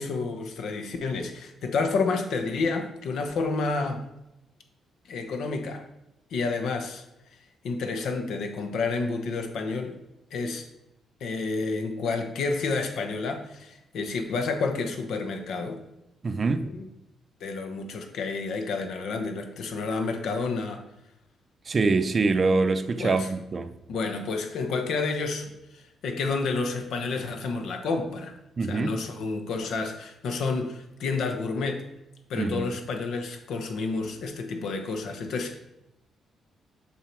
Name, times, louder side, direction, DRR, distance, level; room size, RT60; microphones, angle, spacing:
voice 1, 0.0-4.0 5.1-5.8 6.3-7.0 7.6-10.0 10.3-10.6 11.2-15.8 16.6-16.9 17.4-20.8 23.0-23.3 23.9-28.4 28.7-31.8 32.3-35.6, left 4 dB, 75° left, 5 dB, 1.1 m, -30 dB
voice 2, 16.2-16.7 21.7-23.7 28.6-28.9 32.3-32.7, right 3 dB, 35° right, 10 dB, 0.5 m, -24 dB
7.3 x 5.6 x 4.6 m, 0.90 s
cardioid pair, 125°, 0 cm